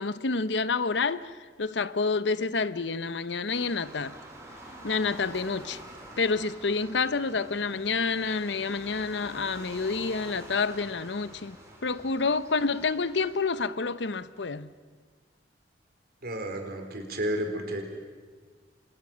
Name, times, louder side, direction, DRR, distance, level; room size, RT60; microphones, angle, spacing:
voice 1, 0.0-1.3 1.6-4.2 4.8-5.8 6.2-11.6 11.8-14.7, left 4 dB, 80° left, 0.9 m, -28 dB
sound 1, 3.5-13.4, right 1 dB, 20° right, 4.8 m, -47 dB
voice 2, 16.2-17.8, right 1 dB, 60° right, 4.4 m, -32 dB
29.5 x 26.0 x 6.4 m
head